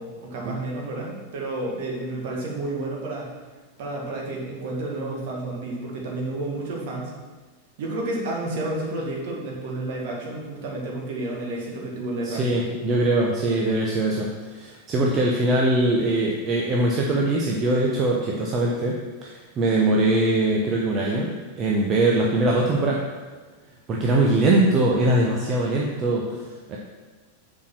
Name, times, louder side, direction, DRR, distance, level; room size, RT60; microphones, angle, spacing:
voice 1, 0.0-3.3 3.8-7.1 7.8-12.7, right 2 dB, 50° right, -2 dB, 2.0 m, -31 dB
voice 2, 12.2-19.0 19.2-23.0 23.9-26.8, right 2 dB, 30° right, -2 dB, 0.9 m, -22 dB
7.0 x 4.8 x 6.1 m, 1.3 s
figure-of-eight pair, 90°, 0 cm